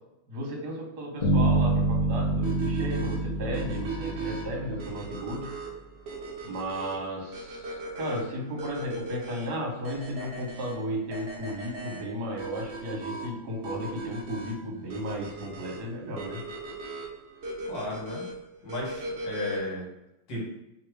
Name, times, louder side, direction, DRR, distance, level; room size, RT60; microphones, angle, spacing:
voice 1, 0.3-5.5 6.4-16.4, equal, 55° right, -1 dB, 1.3 m, -34 dB
sound 1, 1.2-5.2, right 2 dB, 40° left, 0.6 m, -26 dB
sound 2, 2.4-19.8, right 2 dB, 85° right, 0.6 m, -39 dB
voice 2, 17.7-18.2 18.6-19.9 20.3-20.5, left 1 dB, 60° left, -4 dB, 2.1 m, -34 dB
3.4 x 3.1 x 4.5 m, 0.89 s
omnidirectional pair, 2.4 m